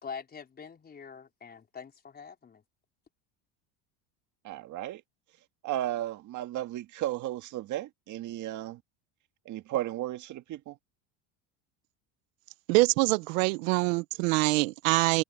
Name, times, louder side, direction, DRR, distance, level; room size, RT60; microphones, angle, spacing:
voice 1, 0.0-2.6, left 6 dB, 25° left, 4.5 m, -44 dB
voice 2, 4.4-5.0 5.6-8.8 9.5-10.8, right 14 dB, 50° right, 1.9 m, -34 dB
voice 3, 12.7-15.2, right 24 dB, 80° right, 0.8 m, -24 dB
supercardioid pair, 120°, 38 cm